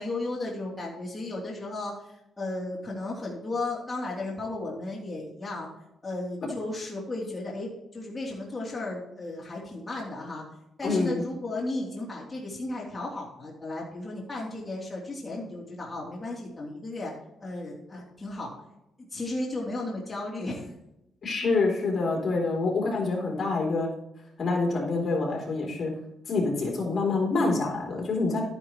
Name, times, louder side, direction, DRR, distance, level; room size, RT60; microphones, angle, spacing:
voice 1, 0.0-5.7 6.0-10.4 10.8-17.1 17.4-18.5 19.1-20.7, left 2 dB, 20° left, -4 dB, 3.1 m, -34 dB
voice 2, 10.8-11.2 21.2-23.9 24.4-25.9 26.3-28.4, left 3 dB, 45° left, -2 dB, 3.4 m, -26 dB
12.5 x 10.5 x 3.1 m, 0.83 s
cardioid pair, 90°, 0 cm